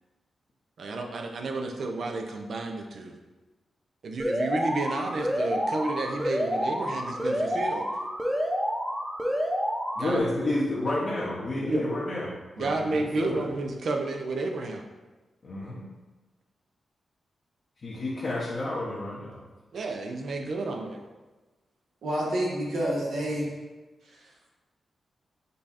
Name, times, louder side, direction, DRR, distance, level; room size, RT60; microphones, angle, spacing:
voice 1, 0.8-3.1 4.0-7.9 10.0-10.3 11.7-11.9 12.6-14.8 19.7-21.0, right 2 dB, 70° right, 4 dB, 0.6 m, -31 dB
Alarm, 4.2-10.2, equal, 5° right, 0.8 m, -29 dB
voice 2, 10.0-12.3 12.6-12.9 13.2-13.4 15.4-15.9 17.8-19.4, left 2 dB, 60° left, -7 dB, 0.9 m, -30 dB
voice 3, 22.0-23.5 24.0-24.3, right 1 dB, 90° right, -4 dB, 1.3 m, -29 dB
5.4 x 2.4 x 4.1 m, 1.2 s
cardioid pair, 70°, 0 cm